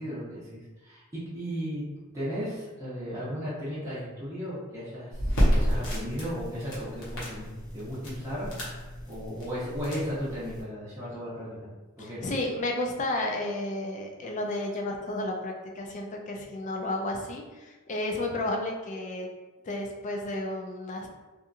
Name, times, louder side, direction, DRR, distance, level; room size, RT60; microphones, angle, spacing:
voice 1, 0.0-1.9 2.1-7.5 7.7-8.5 9.1-11.7 12.0-12.2, equal, 15° right, -11 dB, 0.7 m, -35 dB
sound 1, 5.1-10.6, equal, 60° left, 0.9 m, -30 dB
voice 2, 12.0-19.3 19.6-21.1, left 1 dB, 35° left, 1 dB, 0.4 m, -32 dB
2.7 x 2.5 x 2.4 m, 1.2 s
head